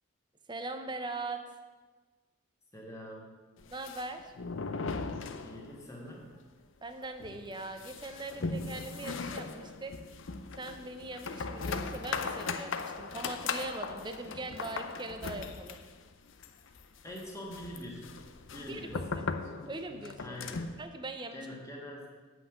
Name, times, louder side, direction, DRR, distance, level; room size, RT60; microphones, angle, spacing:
voice 1, 0.5-1.4 3.7-4.3 6.8-9.9 10.6-15.8 18.6-19.3 19.7-20.4 20.8-21.5, right 2 dB, 20° right, 7 dB, 0.6 m, -41 dB
voice 2, 2.7-3.3 5.4-6.2 17.0-18.1 18.5-19.1 20.2-20.7 21.3-22.1, left 1 dB, 15° left, -2 dB, 1.8 m, -44 dB
sound 1, 3.6-6.0 6.2-6.3 6.7-6.8 7.2-20.8, left 4 dB, 75° left, 0.6 m, -38 dB
8.0 x 5.6 x 7.8 m, 1.3 s
head